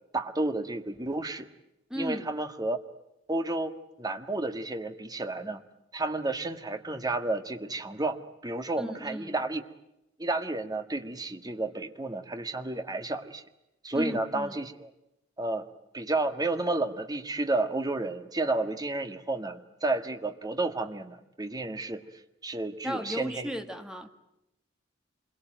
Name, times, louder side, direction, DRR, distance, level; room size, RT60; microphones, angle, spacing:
voice 1, 0.1-1.5 2.0-2.8 3.3-3.7 4.0-5.6 5.9-9.6 10.2-13.4 13.8-14.9 15.4-15.7 15.9-22.0 22.4-23.5, right 2 dB, 20° right, 7 dB, 1.7 m, -31 dB
voice 2, 1.9-2.3 8.8-9.3 13.9-14.6 22.8-24.1, equal, 5° right, 5 dB, 2.0 m, -35 dB
27.0 x 22.5 x 9.0 m, 0.86 s
head